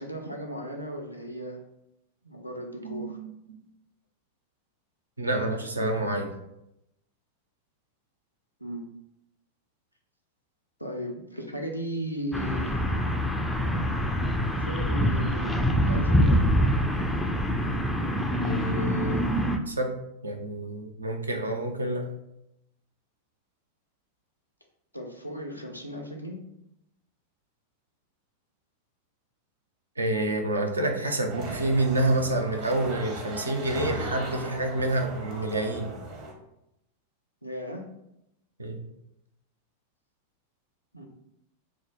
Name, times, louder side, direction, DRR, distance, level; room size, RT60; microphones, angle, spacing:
voice 1, 0.0-1.6 2.2-3.2 8.6-8.9 10.8-12.9 14.6-16.4 24.9-26.4 37.4-37.8 40.9-41.1, equal, 90° left, 1 dB, 0.5 m, -36 dB
voice 2, 2.8-3.6 5.2-6.3 18.4-19.2 19.7-19.9 20.2-22.1 30.0-35.9 38.6-38.8, right 1 dB, 75° right, 3 dB, 0.4 m, -28 dB
sound 1, 12.3-19.6, equal, 5° left, 0.3 m, -25 dB
sound 2, 31.3-36.3, right 1 dB, 40° right, 0.8 m, -37 dB
2.9 x 2.0 x 3.9 m, 0.84 s
figure-of-eight pair, 90°, 0 cm